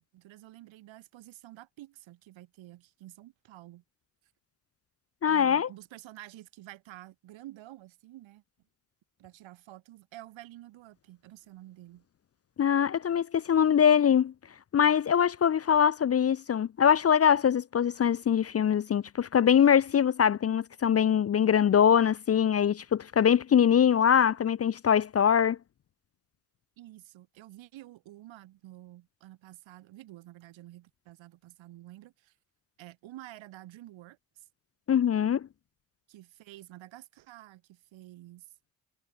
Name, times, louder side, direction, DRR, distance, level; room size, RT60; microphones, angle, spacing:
voice 1, 0.0-3.8 5.3-8.4 9.2-12.0 26.8-32.3 32.8-34.5 36.1-38.5, right 15 dB, 75° right, 6.1 m, -50 dB
voice 2, 5.2-5.7 12.6-14.3 14.7-25.6 34.9-35.4, left 8 dB, 35° left, 0.5 m, -23 dB
supercardioid pair, 55°, 46 cm